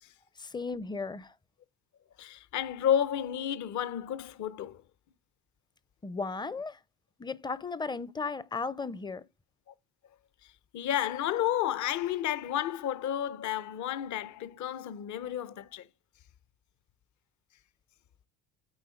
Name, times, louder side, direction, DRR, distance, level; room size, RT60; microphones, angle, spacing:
voice 1, 0.4-1.3 6.0-6.8 7.2-9.2, left 4 dB, 10° left, 0.5 m, -35 dB
voice 2, 2.2-4.8 9.7-9.8 10.4-15.9, left 10 dB, 55° left, 0.8 m, -31 dB
8.9 x 3.7 x 5.1 m
supercardioid pair, 85°, 36 cm